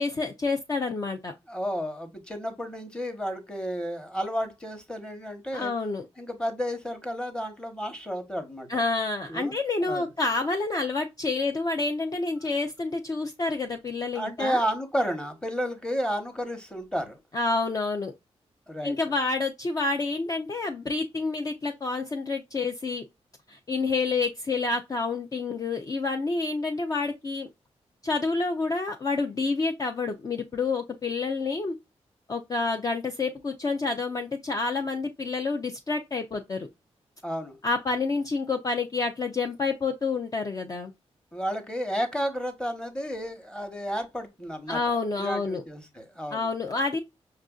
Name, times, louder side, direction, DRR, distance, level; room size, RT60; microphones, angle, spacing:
voice 1, 0.0-1.3 5.5-6.1 8.7-14.6 17.3-18.1 18.8-23.0 23.5-27.5 28.0-31.7 32.3-36.7 37.6-40.9 44.7-45.6 46.3-47.0, left 3 dB, 35° left, 0.5 m, -28 dB
voice 2, 1.5-5.7 6.2-8.8 9.3-9.6 9.8-10.1 14.1-17.2 18.7-18.9 37.2-37.6 41.3-46.5, equal, 5° left, 1.0 m, -32 dB
5.5 x 2.5 x 2.3 m
wide cardioid pair, 105°, 11 cm